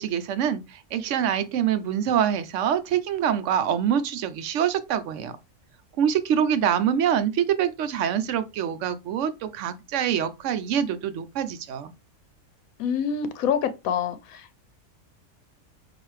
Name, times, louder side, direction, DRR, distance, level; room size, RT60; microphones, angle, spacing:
voice 1, 0.0-5.3 6.0-11.9, right 9 dB, 65° right, 0.8 m, -25 dB
voice 2, 12.8-14.6, left 7 dB, 80° left, 1.1 m, -26 dB
5.8 x 2.6 x 3.1 m
omnidirectional pair, 1.5 m